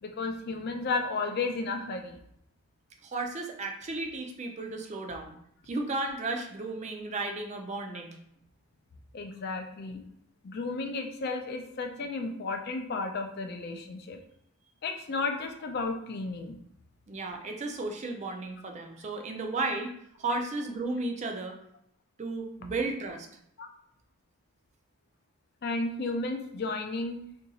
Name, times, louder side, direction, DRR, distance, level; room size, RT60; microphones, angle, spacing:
voice 1, 0.0-2.2 9.1-10.0 10.4-14.2 14.8-16.6 23.6-23.7 25.6-27.2, left 3 dB, 45° left, 4 dB, 0.4 m, -33 dB
voice 2, 3.0-5.4 5.7-8.2 17.1-19.9 20.2-21.6 22.2-23.3, right 2 dB, 30° right, 3 dB, 0.4 m, -34 dB
2.8 x 2.6 x 4.0 m, 0.72 s
head